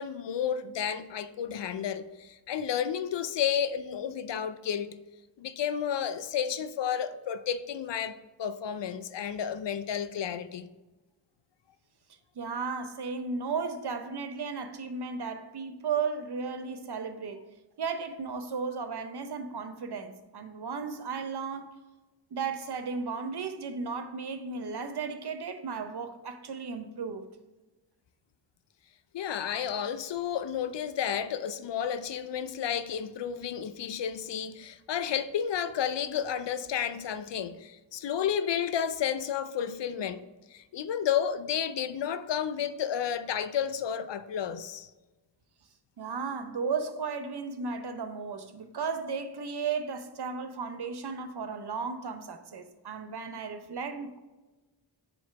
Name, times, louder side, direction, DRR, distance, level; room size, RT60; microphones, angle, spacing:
voice 1, 0.0-5.0 5.4-10.7 29.1-40.2 40.5-44.9, left 8 dB, 60° left, 0.5 m, -31 dB
voice 2, 12.4-17.4 17.8-21.7 22.3-27.3 46.0-54.2, right 5 dB, 55° right, 0.7 m, -35 dB
4.8 x 3.9 x 5.8 m
cardioid pair, 40°, 48 cm